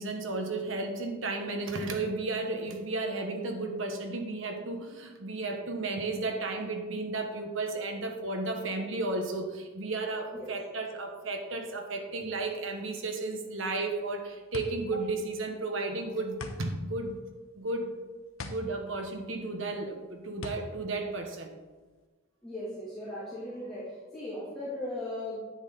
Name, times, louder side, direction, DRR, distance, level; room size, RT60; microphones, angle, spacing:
voice 1, 0.0-17.2 17.6-17.9 18.4-21.5, right 2 dB, 70° right, 4 dB, 1.3 m, -33 dB
sound 1, 13.8-22.1, left 2 dB, 90° left, 1.0 m, -44 dB
voice 2, 22.4-25.5, left 1 dB, ahead, -12 dB, 2.8 m, -38 dB
10.5 x 9.0 x 4.0 m, 1.3 s
head